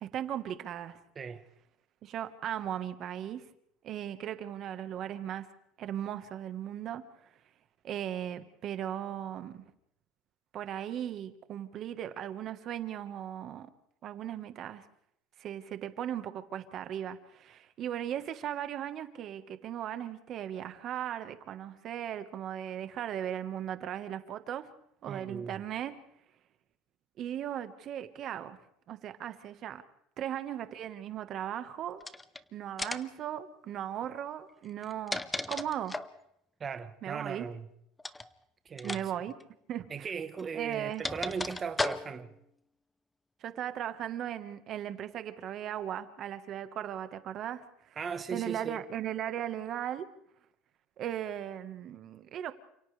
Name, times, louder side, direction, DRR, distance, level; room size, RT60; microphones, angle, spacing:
voice 1, 0.0-1.0 2.0-3.4 3.8-5.5 5.8-7.0 7.8-9.7 10.5-13.7 14.0-14.8 15.4-24.7 25.0-25.9 27.2-28.6 28.9-29.8 30.2-32.0 32.5-35.2 35.5-36.0 37.0-37.5 38.8-39.4 39.7-40.1 40.5-41.1 43.4-48.0 48.3-50.1 51.0-52.5, right 10 dB, 40° right, 1.4 m, -37 dB
voice 2, 25.1-25.6 36.6-37.7 38.6-39.0 39.9-42.3 48.0-48.8, right 6 dB, 25° right, 1.2 m, -38 dB
sound 1, 32.0-32.4 32.8-33.2 34.7-36.2 38.0-38.3 38.8-39.0 39.3-39.4 40.4-42.3, left 2 dB, 10° left, 0.7 m, -36 dB
29.5 x 27.0 x 3.4 m
cardioid pair, 155°, 0 cm